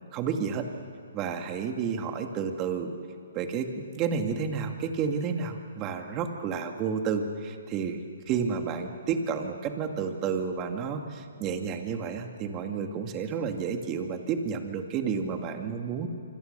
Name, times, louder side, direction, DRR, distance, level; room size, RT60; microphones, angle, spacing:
voice 1, 0.1-0.7 1.1-2.9 3.3-8.0 8.3-16.1, right 6 dB, 25° right, 5 dB, 2.2 m, -31 dB
26.0 x 25.5 x 6.8 m, 2.3 s
hypercardioid pair, 150°, 0 cm